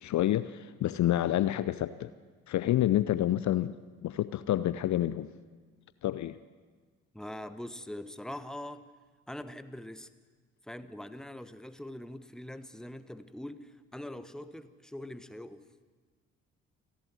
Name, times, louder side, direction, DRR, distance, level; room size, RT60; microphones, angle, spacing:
voice 1, 0.0-2.1 2.5-3.8 4.0-5.3 6.0-6.4, left 13 dB, 45° left, 15 dB, 0.7 m, -28 dB
voice 2, 7.1-8.9 9.3-10.1 10.6-15.6, left 1 dB, ahead, 12 dB, 1.2 m, -43 dB
28.5 x 11.5 x 9.7 m, 1.5 s
figure-of-eight pair, 45°, 39 cm